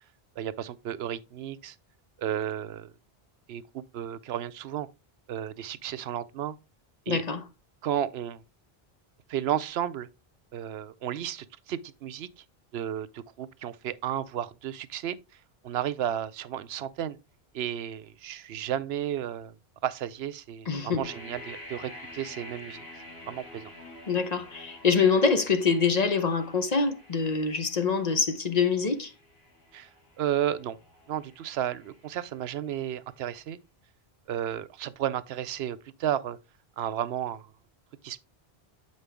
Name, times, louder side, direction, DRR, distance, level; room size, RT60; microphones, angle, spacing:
voice 1, 0.4-1.8 2.2-2.9 3.5-4.9 5.3-6.6 7.1-7.2 7.8-8.4 9.3-10.1 10.5-12.4 12.7-15.2 15.6-17.2 17.5-19.5 19.8-22.9 23.3-23.7 29.7-29.9 30.2-30.8 31.1-33.6 34.3-36.4 36.8-37.5 38.0-38.3, right 10 dB, 80° right, 0.8 m, -33 dB
voice 2, 7.1-7.4 20.7-21.1 24.1-29.1, left 5 dB, 45° left, 0.8 m, -25 dB
sound 1, 21.0-32.8, left 1 dB, 75° left, 2.9 m, -48 dB
8.0 x 5.3 x 3.4 m
omnidirectional pair, 1.1 m